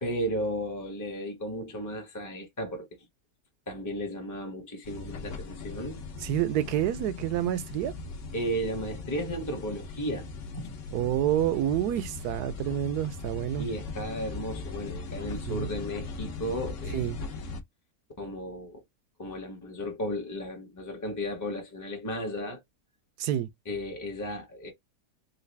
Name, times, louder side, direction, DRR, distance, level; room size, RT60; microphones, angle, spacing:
voice 1, 0.0-2.9 3.7-6.0 8.3-10.3 10.5-10.7 13.6-17.1 18.2-18.8 19.2-22.6 23.7-24.7, equal, 15° left, 0.7 m, -34 dB
sound 1, 4.8-17.6, left 3 dB, 60° left, 1.0 m, -39 dB
voice 2, 6.2-7.9 10.9-13.7 15.5-15.7 16.9-17.2 23.2-23.5, right 11 dB, 80° right, 1.1 m, -28 dB
4.0 x 2.3 x 3.3 m
omnidirectional pair, 1.7 m